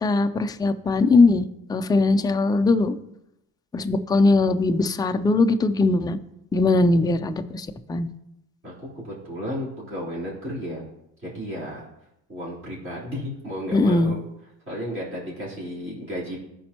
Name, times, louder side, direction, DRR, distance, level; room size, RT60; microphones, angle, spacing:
voice 1, 0.0-3.0 3.7-6.2 6.5-8.1 13.7-14.1, left 3 dB, 10° left, 8 dB, 0.3 m, -20 dB
voice 2, 8.6-10.8 11.2-11.9 12.3-14.2 14.7-16.4, equal, 30° right, -7 dB, 3.5 m, -33 dB
14.5 x 5.3 x 2.9 m, 0.84 s
cardioid pair, 115°, 37 cm